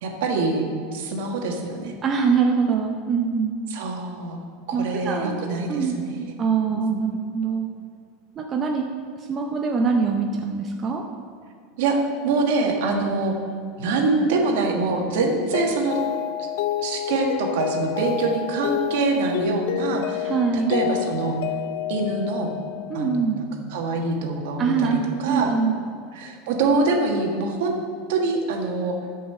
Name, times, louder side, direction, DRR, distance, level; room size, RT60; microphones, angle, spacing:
voice 1, 0.0-0.6 0.9-1.9 3.7-6.4 6.7-7.0 11.8-13.4 13.8-16.0 16.4-16.5 16.8-21.4 21.9-22.5 22.9-25.5 26.1-27.8 28.1-29.0, right 3 dB, 60° right, 2 dB, 1.6 m, -25 dB
voice 2, 2.0-3.6 4.7-5.4 5.7-6.0 6.4-7.7 8.4-8.8 9.2-11.0 20.2-20.7 22.9-23.4 24.6-25.8, right 5 dB, 20° right, 1 dB, 0.6 m, -23 dB
Mallet percussion, 15.2-23.3, left 12 dB, 55° left, 0.4 m, -29 dB
12.0 x 5.5 x 6.7 m, 2.2 s
supercardioid pair, 180°, 0 cm